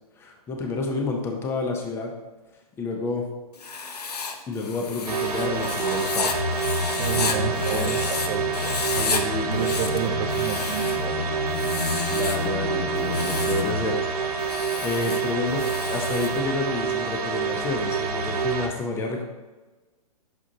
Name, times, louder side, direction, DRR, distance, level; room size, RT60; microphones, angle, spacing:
voice 1, 0.2-2.1 2.8-3.3 4.5-6.4 7.2-7.4 7.7-7.9 8.9-9.7 12.1-14.0 14.4-19.2, left 3 dB, 10° left, 2 dB, 0.6 m, -30 dB
Writing, 3.5-8.3 8.5-9.2 9.5-11.0 11.5-12.5 13.0-13.7 14.4-16.4, left 5 dB, 90° left, 0.7 m, -32 dB
sound 1, 5.1-18.7, right 5 dB, 75° right, 1.0 m, -28 dB
sound 2, 6.3-13.8, left 4 dB, 10° right, 2.0 m, -31 dB
voice 2, 7.0-8.0 8.3-8.4 8.9-11.2, right 8 dB, 35° right, 8 dB, 0.5 m, -30 dB
6.0 x 5.7 x 2.8 m, 1.2 s
hypercardioid pair, 135°, 20 cm